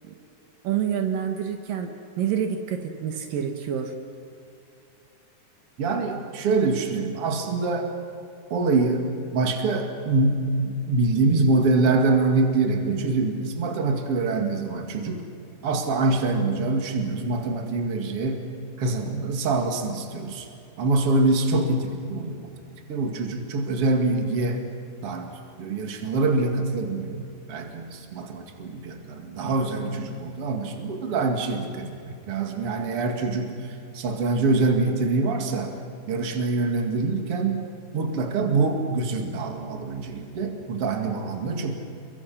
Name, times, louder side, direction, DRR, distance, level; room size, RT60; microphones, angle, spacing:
voice 1, 0.6-1.9 2.2-3.9, right 8 dB, 75° right, 5 dB, 3.0 m, -27 dB
voice 2, 5.8-7.9 8.5-9.1 9.3-15.3 15.6-18.5 18.8-20.5 20.8-22.5 22.9-24.6 25.0-27.2 27.5-35.7 36.1-37.7 37.9-41.8, right 3 dB, 45° right, 3 dB, 2.9 m, -25 dB
29.5 x 23.0 x 6.0 m, 2.5 s
omnidirectional pair, 4.0 m